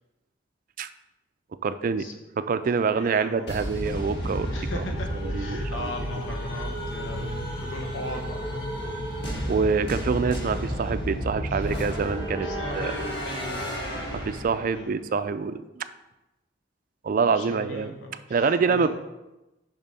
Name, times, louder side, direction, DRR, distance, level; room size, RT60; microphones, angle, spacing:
voice 1, 1.6-2.1 2.4-4.8 5.2-5.8 9.5-12.5 12.7-12.9 14.1-15.9 17.0-18.0 18.3-18.9, right 5 dB, 45° right, 12 dB, 0.3 m, -26 dB
voice 2, 2.9-3.7 4.5-9.0 11.5-11.7 12.4-13.6 14.7-14.9 17.3-18.9, left 1 dB, 90° left, 2 dB, 1.3 m, -38 dB
sound 1, 3.5-14.9, equal, 60° left, 1.5 m, -31 dB
7.0 x 5.9 x 4.1 m, 1.0 s
head